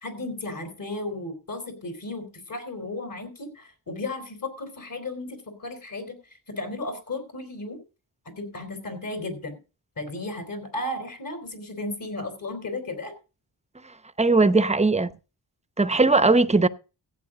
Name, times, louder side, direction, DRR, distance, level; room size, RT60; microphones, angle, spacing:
voice 1, 0.0-6.1 6.5-7.8 8.3-9.6 10.0-13.1, left 2 dB, 50° left, 4.2 m, -34 dB
voice 2, 14.2-15.1 15.8-16.7, right 3 dB, 15° right, 0.7 m, -19 dB
15.0 x 8.8 x 3.9 m
wide cardioid pair, 90°, 43 cm